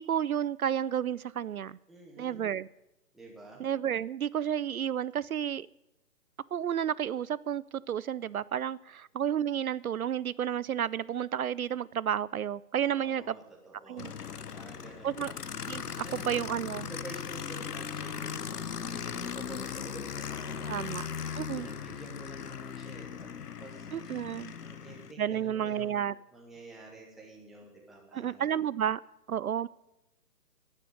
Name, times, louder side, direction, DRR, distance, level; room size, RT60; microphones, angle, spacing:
voice 1, 0.0-1.8 2.2-2.7 3.6-5.7 6.5-13.3 13.9-14.1 15.0-15.3 15.7-16.9 20.7-21.1 21.4-21.7 23.9-24.5 25.2-26.1 28.1-29.0 29.3-29.7, right 9 dB, 65° right, 20 dB, 0.5 m, -31 dB
voice 2, 1.9-2.5 3.1-3.6 12.9-15.4 15.9-16.4 16.7-23.3 23.6-24.3 24.6-28.6, right 2 dB, ahead, -2 dB, 0.8 m, -49 dB
Aircraft, 14.0-25.1, left 7 dB, 75° left, 1.0 m, -38 dB
11.5 x 9.9 x 9.7 m, 0.91 s
figure-of-eight pair, 150°, 47 cm